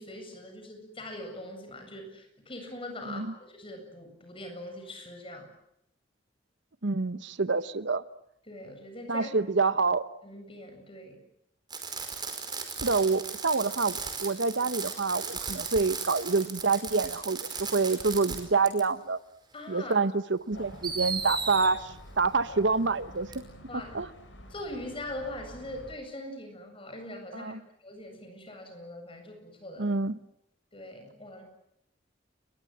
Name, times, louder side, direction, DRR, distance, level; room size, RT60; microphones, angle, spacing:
voice 1, 0.0-5.5 8.5-9.3 10.2-11.2 19.5-20.0 23.7-23.9 24.5-27.6 27.8-29.9 30.7-31.4, left 1 dB, 30° left, 5 dB, 7.8 m, -42 dB
voice 2, 6.8-8.0 9.1-10.1 12.8-19.2 19.7-23.3 23.7-24.1 27.3-27.6 29.8-30.2, right 4 dB, 70° right, 14 dB, 1.0 m, -27 dB
Fireworks, 11.7-18.4 18.7-18.8 19.9-20.0 20.8-21.7 23.3-23.4, right 5 dB, 25° right, 5.1 m, -36 dB
sound 1, 20.5-25.9, left 1 dB, 75° left, 7.0 m, -47 dB
29.5 x 22.5 x 7.5 m, 0.76 s
head